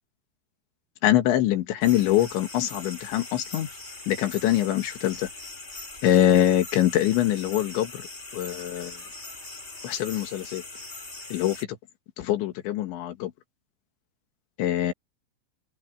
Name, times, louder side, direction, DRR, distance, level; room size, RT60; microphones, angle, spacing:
voice 1, 1.0-3.7 4.1-5.3 6.0-8.0 8.3-9.0 9.8-10.6 11.3-11.7 12.2-13.3 14.6-14.9, left 12 dB, 85° left, 4.0 m, -24 dB
sound 1, 1.8-11.6, left 2 dB, 20° left, 2.4 m, -41 dB
open air
omnidirectional pair, 5.2 m